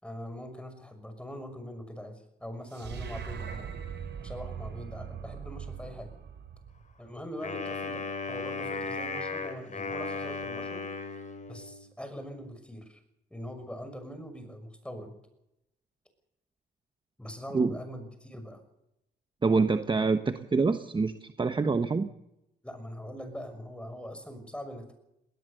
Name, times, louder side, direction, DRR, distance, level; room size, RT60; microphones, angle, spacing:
voice 1, 0.0-3.8 4.2-6.1 7.0-10.8 11.5-13.0 13.3-15.2 17.2-18.6 22.6-24.9, equal, 5° left, 7 dB, 6.1 m, -42 dB
sound 1, 2.7-7.1, right 7 dB, 60° right, 5.3 m, -40 dB
Wind instrument woodwind instrument, 7.4-11.9, left 4 dB, 40° left, 4.6 m, -36 dB
voice 2, 19.4-22.1, right 4 dB, 25° right, 8 dB, 1.2 m, -26 dB
20.0 x 19.0 x 6.8 m, 0.85 s
cardioid pair, 90°, 20 cm